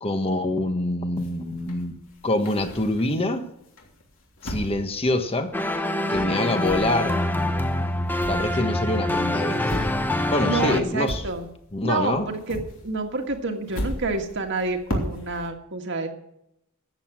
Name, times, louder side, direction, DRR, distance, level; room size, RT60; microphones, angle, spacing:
voice 1, 0.0-2.0 2.2-3.5 4.4-5.5 6.1-7.3 8.3-9.9 10.3-11.2 11.7-12.3, left 1 dB, 25° left, 1.3 m, -25 dB
sound 1, 1.2-3.3 3.8-5.9 6.1-11.8 12.1-15.5, equal, 65° left, 3.1 m, -36 dB
sound 2, 5.5-10.8, left 1 dB, 10° left, 0.8 m, -25 dB
voice 2, 10.4-11.5 11.8-12.6 12.8-16.1, right 3 dB, 60° right, 1.8 m, -28 dB
13.5 x 8.6 x 6.1 m
head